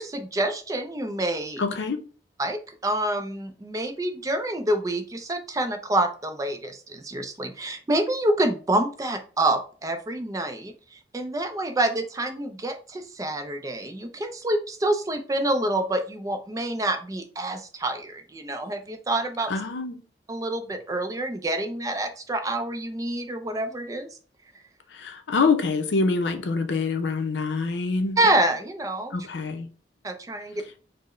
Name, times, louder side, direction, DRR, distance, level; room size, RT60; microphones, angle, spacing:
voice 1, 0.0-1.6 2.4-19.5 20.3-24.1 28.2-29.1 30.0-30.6, right 1 dB, 20° right, 0.4 m, -27 dB
voice 2, 1.6-2.0 19.5-20.0 24.9-28.2 29.1-29.7, left 4 dB, 85° left, 0.6 m, -25 dB
4.4 x 2.0 x 3.0 m
head